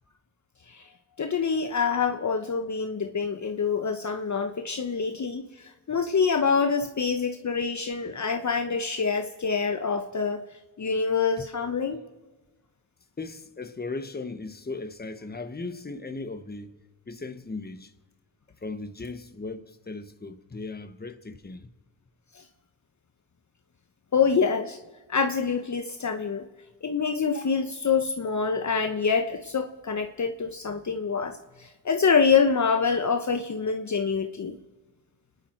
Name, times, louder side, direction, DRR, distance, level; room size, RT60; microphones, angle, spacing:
voice 1, 1.2-10.4 10.8-12.0 22.3-22.4 24.1-24.8 25.1-26.4 26.8-34.6, left 5 dB, 40° left, 1.1 m, -26 dB
voice 2, 13.2-16.8 17.1-17.9 18.6-21.7, left 3 dB, 20° left, 1.3 m, -37 dB
28.0 x 11.0 x 4.6 m
cardioid pair, 55°, 44 cm